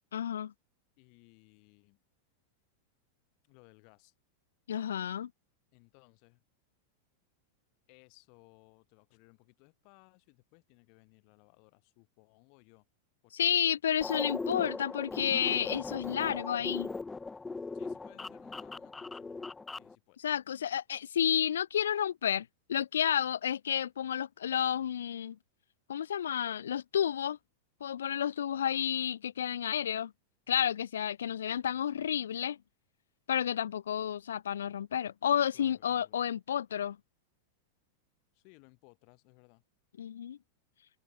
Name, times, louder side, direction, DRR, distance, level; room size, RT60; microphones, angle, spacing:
voice 1, 0.1-0.5 4.7-5.3 13.3-16.9 20.2-25.4 25.9-27.4 27.8-30.1 30.5-32.6 33.3-37.0 40.0-40.4, left 9 dB, 65° left, 0.6 m, -31 dB
voice 2, 1.0-2.0 3.4-4.1 5.7-6.4 7.9-12.9 13.2-13.8 17.7-20.2 35.5-36.2 38.3-39.6, left 40 dB or more, 45° left, 3.9 m, -62 dB
sound 1, 14.0-19.9, left 3 dB, 10° left, 0.9 m, -39 dB
figure-of-eight pair, 90°, 0 cm